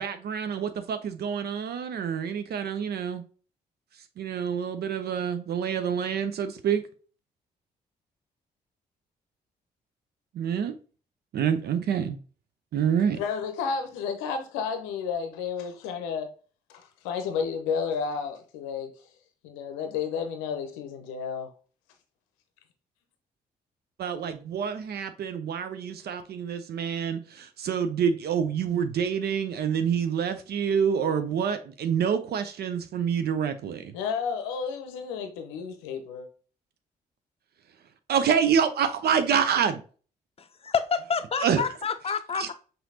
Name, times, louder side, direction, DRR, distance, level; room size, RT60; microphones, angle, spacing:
voice 1, 0.0-3.2 4.2-6.8 10.3-10.8 11.3-12.2 12.7-13.2 24.0-33.9 38.1-39.8 41.4-41.7 42.3-42.5, right 7 dB, 50° right, 0.5 m, -27 dB
voice 2, 13.1-16.3 16.7-18.9 19.4-21.5 33.9-36.3, left 6 dB, 70° left, 0.7 m, -31 dB
voice 3, 40.6-42.5, left 6 dB, 30° left, 0.6 m, -28 dB
5.7 x 2.6 x 2.7 m
figure-of-eight pair, 40°, 21 cm